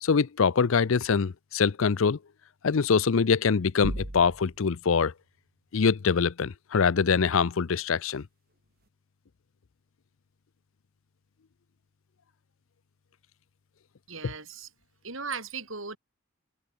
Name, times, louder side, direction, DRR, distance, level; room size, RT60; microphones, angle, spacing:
voice 1, 0.0-2.2 2.6-5.1 5.7-8.2 14.2-14.3, left 5 dB, 65° left, 0.5 m, -24 dB
sound 1, 3.8-4.8, right 1 dB, 45° right, 1.7 m, -35 dB
voice 2, 14.1-14.7 15.0-16.0, right 5 dB, 65° right, 6.0 m, -37 dB
head